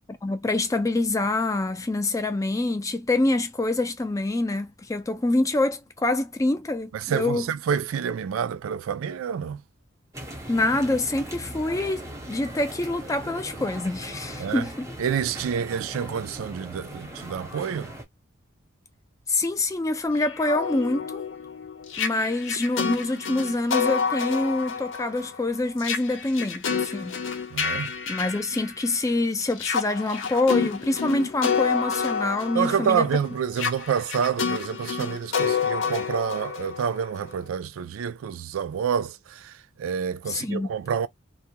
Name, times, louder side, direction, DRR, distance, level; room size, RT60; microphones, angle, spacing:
voice 1, 0.1-7.5 10.5-14.9 19.3-21.2 22.0-27.2 28.1-33.1 40.3-40.7, left 2 dB, 15° left, 0.3 m, -26 dB
voice 2, 6.9-9.6 14.4-14.7 15.0-17.9 27.5-27.9 32.5-41.1, right 7 dB, 85° right, 0.3 m, -28 dB
sound 1, 10.1-18.0, right 1 dB, 15° right, 0.7 m, -39 dB
sound 2, 20.2-29.1 29.5-37.3, left 6 dB, 65° left, 0.6 m, -29 dB
2.3 x 2.2 x 2.8 m
head